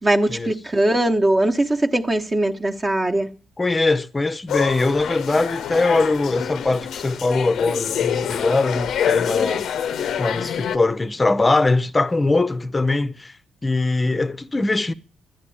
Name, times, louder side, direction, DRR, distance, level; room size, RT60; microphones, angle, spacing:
voice 1, 0.0-3.3, right 1 dB, 25° right, 1.0 m, -20 dB
voice 2, 3.6-9.7 10.2-13.3 13.6-14.9, left 3 dB, 20° left, 0.7 m, -21 dB
sound 1, 4.5-10.8, left 9 dB, 70° left, 0.6 m, -26 dB
12.0 x 9.7 x 8.5 m
cardioid pair, 90°, 0 cm